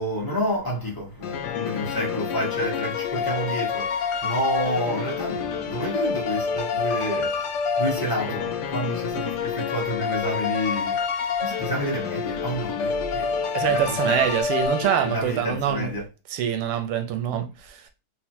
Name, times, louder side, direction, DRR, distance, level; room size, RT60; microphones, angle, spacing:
voice 1, 0.0-7.4 7.8-11.0 11.4-14.3 15.0-16.0, equal, 25° left, 0.4 m, -29 dB
sound 1, 1.2-15.5, left 6 dB, 85° left, 0.9 m, -28 dB
voice 2, 13.5-15.9 16.3-17.9, right 9 dB, 80° right, 1.6 m, -25 dB
4.2 x 2.1 x 4.3 m
omnidirectional pair, 2.4 m